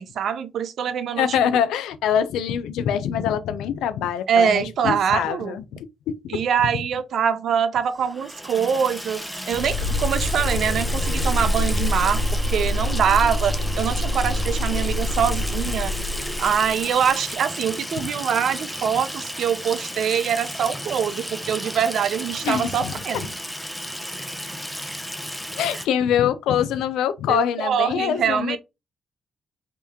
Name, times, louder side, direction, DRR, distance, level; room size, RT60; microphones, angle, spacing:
voice 1, 0.0-1.4 4.3-5.6 6.3-15.9 16.4-23.3 27.3-28.6, right 8 dB, 75° right, 0.5 m, -24 dB
voice 2, 1.2-6.8 22.4-23.3 25.5-28.6, left 9 dB, 85° left, 0.4 m, -24 dB
Water tap faucet / Sink (filling or washing), 7.9-25.9, equal, 5° left, 0.7 m, -33 dB
sound 1, 9.5-16.7, left 1 dB, 45° left, 1.0 m, -25 dB
3.2 x 3.0 x 3.4 m
supercardioid pair, 55°, 0 cm